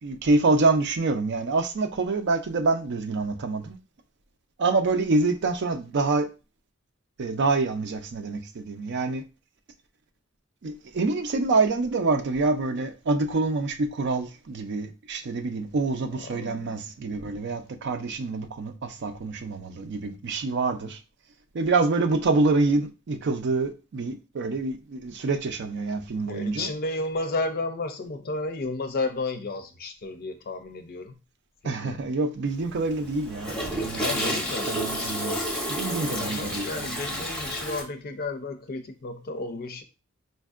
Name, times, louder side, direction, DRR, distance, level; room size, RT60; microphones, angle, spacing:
voice 1, 0.0-3.8 4.6-6.3 7.2-9.2 10.6-21.0 21.5-26.7 31.6-35.4 35.6-37.2, right 3 dB, 55° right, 0.5 m, -26 dB
voice 2, 16.2-16.8 26.2-31.1 31.6-32.0 33.9-34.7 36.0-39.8, left 2 dB, 45° left, 0.5 m, -32 dB
Toilet flush, 32.5-37.8, equal, 5° left, 0.7 m, -31 dB
4.3 x 2.6 x 2.4 m
head